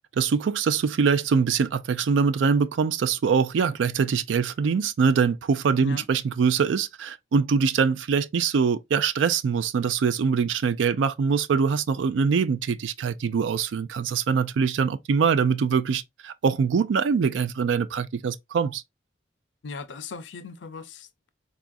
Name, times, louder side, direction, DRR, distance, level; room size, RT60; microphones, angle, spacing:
voice 1, 0.2-18.8, right 6 dB, 85° right, 0.4 m, -23 dB
voice 2, 19.6-21.3, left 4 dB, 75° left, 0.5 m, -38 dB
3.9 x 2.4 x 2.5 m
head